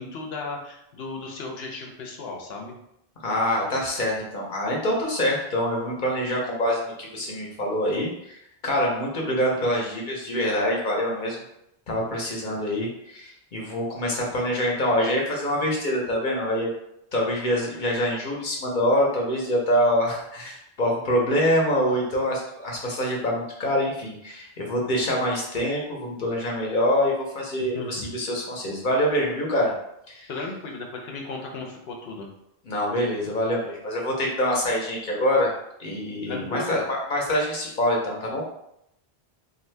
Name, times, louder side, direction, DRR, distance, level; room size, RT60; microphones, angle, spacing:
voice 1, 0.0-2.8 27.7-28.1 30.3-32.3 36.3-36.8, left 3 dB, 75° left, 1 dB, 0.9 m, -35 dB
voice 2, 3.2-11.4 11.9-16.7 17.1-29.7 30.1-30.3 32.7-35.5 35.8-38.4, equal, 50° left, -2 dB, 0.9 m, -25 dB
2.6 x 2.6 x 3.2 m, 0.78 s
omnidirectional pair, 1.0 m